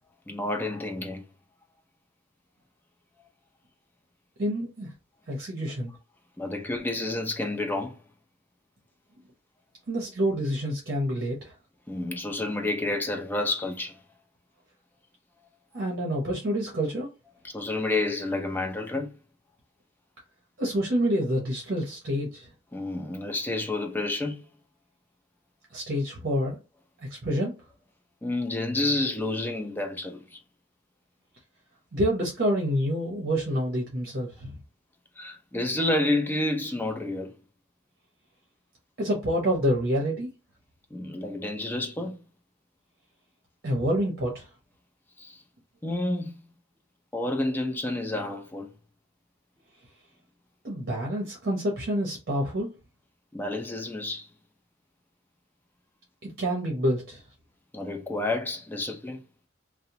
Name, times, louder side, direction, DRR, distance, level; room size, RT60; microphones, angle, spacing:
voice 1, 0.3-1.2 6.4-8.0 11.9-14.0 17.4-19.1 22.7-24.5 28.2-30.4 35.2-37.3 40.9-42.2 45.2-45.4 45.8-46.3 47.1-48.7 53.3-54.3 57.7-59.2, left 2 dB, 10° left, 0.4 m, -29 dB
voice 2, 4.4-4.9 5.3-5.9 9.9-11.5 15.7-17.1 20.6-22.5 25.7-26.6 27.1-27.5 31.9-34.5 39.0-40.3 43.6-44.5 50.6-52.7 56.2-57.2, equal, 50° right, 0.7 m, -27 dB
2.7 x 2.0 x 2.8 m
head